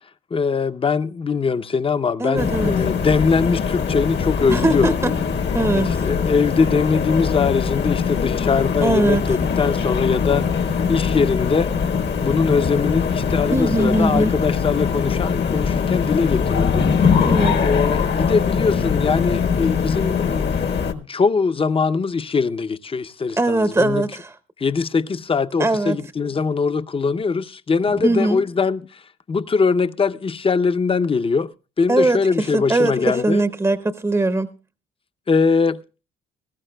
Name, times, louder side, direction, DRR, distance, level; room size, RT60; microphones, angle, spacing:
voice 1, 0.3-5.0 5.7-10.5 10.9-11.7 12.2-16.9 17.6-24.1 24.6-29.0 29.3-33.4 35.3-35.8, left 5 dB, 25° left, 0.6 m, -21 dB
voice 2, 2.2-2.7 4.5-5.1 5.5-5.9 8.8-9.2 13.5-14.3 17.2-17.6 23.4-24.3 25.6-26.0 27.9-28.4 31.9-34.5, right 2 dB, 15° right, 0.7 m, -20 dB
sound 1, 2.4-20.9, left 6 dB, 60° left, 1.3 m, -22 dB
19.0 x 14.5 x 2.2 m
cardioid pair, 90°, 20 cm